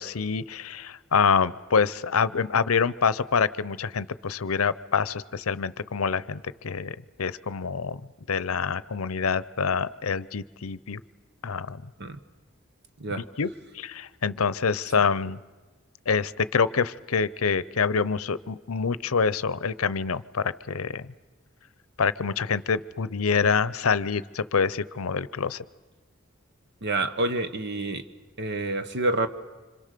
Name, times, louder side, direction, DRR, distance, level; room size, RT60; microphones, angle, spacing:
voice 1, 0.0-8.0 8.3-11.0 11.4-11.8 13.4-15.4 16.1-21.1 22.0-25.6, left 5 dB, 80° left, 17 dB, 0.7 m, -26 dB
voice 2, 26.8-28.0 28.4-29.3, right 2 dB, 55° right, 10 dB, 1.3 m, -28 dB
26.0 x 26.0 x 6.7 m, 1.3 s
head